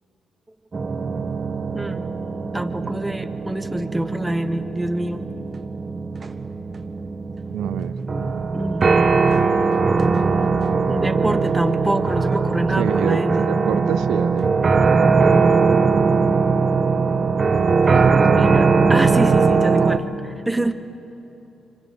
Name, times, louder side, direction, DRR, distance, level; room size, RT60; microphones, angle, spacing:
sound 1, 0.7-20.0, right 4 dB, 45° right, 1.1 m, -20 dB
voice 1, 1.7-2.1 2.5-5.3 8.1-9.5 9.8-10.6 10.9-13.5 18.3-20.7, right 1 dB, 10° right, 8 dB, 1.2 m, -27 dB
voice 2, 7.5-8.5 12.8-14.5 17.5-18.5, right 11 dB, 85° right, 13 dB, 0.4 m, -28 dB
27.0 x 25.5 x 3.8 m, 2.8 s
supercardioid pair, 65°, 0 cm